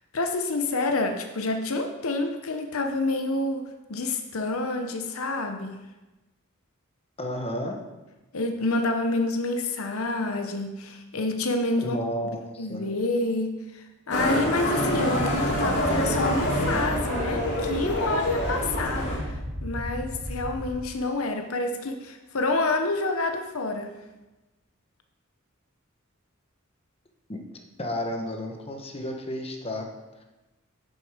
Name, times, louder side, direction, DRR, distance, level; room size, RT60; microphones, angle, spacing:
voice 1, 0.1-5.8 8.3-12.0 12.6-23.9, left 2 dB, 90° left, 5 dB, 0.9 m, -28 dB
voice 2, 7.2-7.8 11.8-12.8 27.3-27.4 27.8-29.9 30.2-30.3, left 1 dB, 30° left, 3 dB, 1.2 m, -32 dB
Motorcycle, 14.1-19.2, equal, 55° left, 2.5 m, -26 dB
sound 1, 15.1-20.7, equal, 60° right, 2.3 m, -35 dB
8.3 x 7.1 x 5.0 m, 1.1 s
head